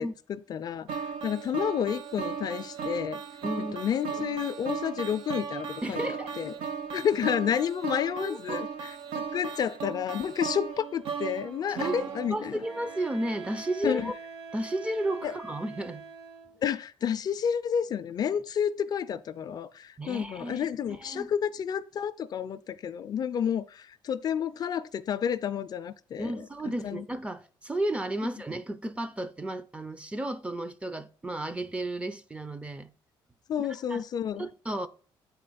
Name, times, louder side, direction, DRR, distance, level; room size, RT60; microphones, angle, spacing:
voice 1, 0.0-3.2 3.6-6.0 6.4-6.5 6.9-12.6 13.8-14.1 15.2-15.3 16.6-26.4 26.8-27.0 33.5-34.5, left 8 dB, 45° left, 0.4 m, -30 dB
sound 1, 0.9-13.1, right 6 dB, 85° right, 0.7 m, -36 dB
voice 2, 3.4-3.7 5.8-6.3 8.2-8.6 11.7-12.0 12.3-14.1 14.5-16.0 20.0-20.7 21.0-21.3 26.2-32.9 33.6-34.0 34.4-34.9, right 1 dB, 10° right, 0.4 m, -33 dB
Wind instrument woodwind instrument, 12.6-16.7, right 5 dB, 50° right, 1.1 m, -44 dB
7.4 x 4.2 x 3.9 m
cardioid pair, 105°, 9 cm